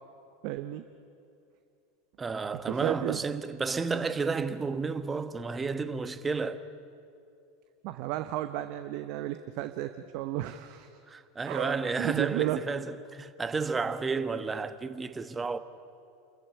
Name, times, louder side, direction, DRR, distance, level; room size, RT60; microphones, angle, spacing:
voice 1, 0.4-0.8 2.7-3.2 7.8-10.9 11.5-12.6, right 14 dB, 55° right, 0.8 m, -33 dB
voice 2, 2.2-6.6 11.1-15.6, right 4 dB, 20° right, 1.1 m, -32 dB
28.5 x 14.5 x 9.9 m
figure-of-eight pair, 85°, 0 cm